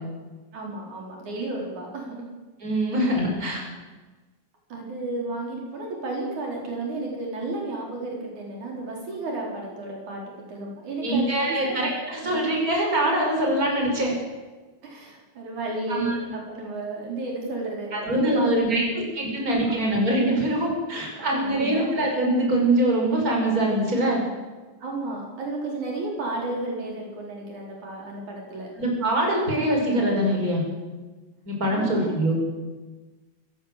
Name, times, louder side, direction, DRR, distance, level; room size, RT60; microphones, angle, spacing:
voice 1, 0.5-2.3 4.7-10.2 10.5-11.9 12.2-12.4 14.8-19.0 19.3-19.4 19.7-19.8 21.1-21.9 24.8-28.7 31.7-32.1, right 2 dB, 75° right, -1 dB, 6.0 m, -33 dB
voice 2, 2.6-3.6 11.0-14.1 15.9-16.2 17.9-18.8 19.2-24.2 28.8-30.6 31.5-32.4, right 1 dB, 25° right, 0 dB, 6.1 m, -23 dB
27.5 x 15.0 x 7.6 m, 1.3 s
omnidirectional pair, 3.4 m